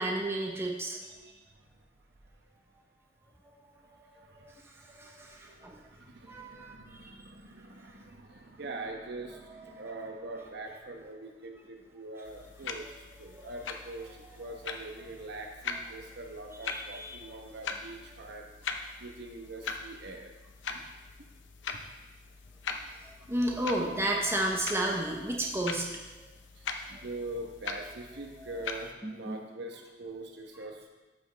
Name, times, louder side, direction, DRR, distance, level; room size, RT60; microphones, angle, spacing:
voice 1, 0.0-1.0 4.0-5.8 6.3-7.1 9.5-10.0 13.3-13.5 15.7-15.8 16.7-17.4 23.0-25.9 26.9-27.0 28.4-28.7 29.0-29.4, right 1 dB, 15° right, 0 dB, 1.0 m, -33 dB
voice 2, 1.0-1.6 4.2-4.6 5.2-18.5 19.0-20.3 20.7-20.8 26.6-30.9, right 2 dB, 65° right, 2 dB, 1.1 m, -43 dB
sound 1, 12.2-28.9, left 5 dB, 85° left, 0.7 m, -42 dB
13.0 x 5.4 x 3.4 m, 1.1 s
head